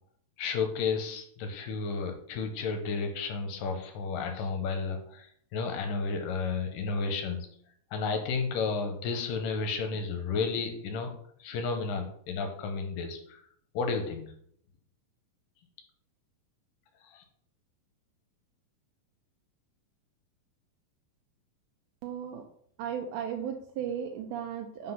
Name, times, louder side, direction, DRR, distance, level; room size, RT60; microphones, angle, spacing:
voice 1, 0.4-7.5 7.9-11.1 11.4-13.4 13.7-14.3 17.0-17.2, left 4 dB, 80° left, 5 dB, 2.3 m, -32 dB
voice 2, 22.0-22.4 22.8-24.9, right 8 dB, 80° right, 3 dB, 1.9 m, -35 dB
5.5 x 3.9 x 5.6 m, 0.65 s
omnidirectional pair, 4.1 m